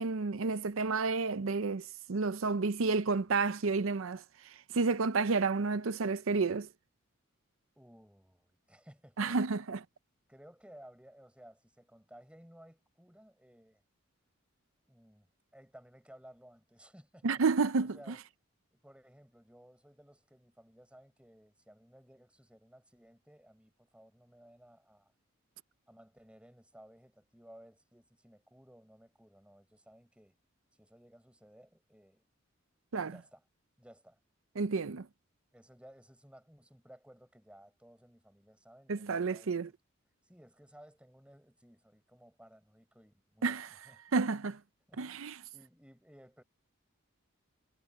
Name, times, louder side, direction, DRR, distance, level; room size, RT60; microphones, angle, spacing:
voice 1, 0.0-4.2 4.7-6.7 9.2-9.8 17.2-18.0 32.9-33.2 34.6-35.1 38.9-39.7 43.4-43.7 44.1-44.6 45.0-45.4, right 4 dB, 75° right, 0.6 m, -30 dB
voice 2, 7.8-9.4 10.3-13.8 14.9-15.3 15.5-17.3 17.8-18.2 18.7-25.1 25.9-30.3 30.8-32.2 33.0-33.4 33.8-34.2 35.5-39.6 40.2-44.2 44.9-46.4, equal, 5° right, 5.4 m, -58 dB
head